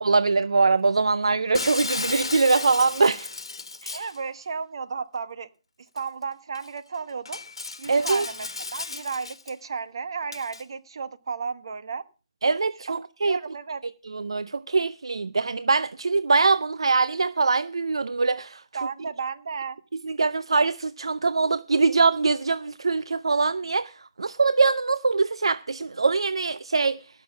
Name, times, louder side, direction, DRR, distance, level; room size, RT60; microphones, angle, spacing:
voice 1, 0.0-3.3 3.8-4.0 7.9-8.3 12.4-13.4 14.1-18.6 20.0-27.0, right 4 dB, 80° right, 0.5 m, -23 dB
Shatter, 1.5-4.2 6.0-6.1 6.5-6.7 7.3-9.5 10.3-10.6, left 4 dB, 80° left, 1.2 m, -34 dB
voice 2, 3.9-5.5 5.9-7.4 7.8-12.0 12.9-13.0 13.2-13.8 18.7-19.8, right 5 dB, 65° right, 1.2 m, -33 dB
17.0 x 6.7 x 5.9 m
figure-of-eight pair, 145°, 3 cm